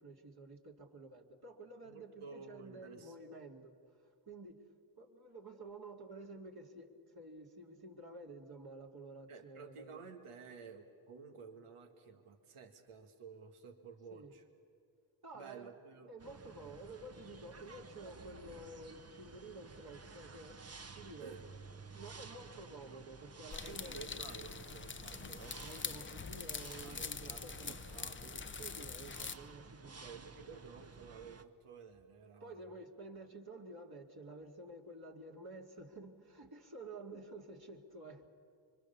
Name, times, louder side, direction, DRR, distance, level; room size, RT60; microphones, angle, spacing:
voice 1, 0.0-3.8 4.3-4.7 5.0-10.0 14.1-14.3 15.2-15.7 16.1-20.6 20.9-21.3 21.9-24.0 25.6-27.7 28.5-30.2 32.4-38.3, right 2 dB, 45° right, 1 dB, 2.8 m, -51 dB
voice 2, 1.8-3.1 9.3-14.4 15.3-16.1 21.2-21.5 23.6-25.7 26.8-28.5 29.8-32.7, right 5 dB, 85° right, 5 dB, 1.8 m, -53 dB
sound 1, 16.2-31.4, right 4 dB, 30° right, 1.1 m, -54 dB
sound 2, 23.5-29.4, left 5 dB, 25° left, 0.7 m, -44 dB
25.0 x 23.0 x 7.0 m, 2.3 s
supercardioid pair, 45°, 50 cm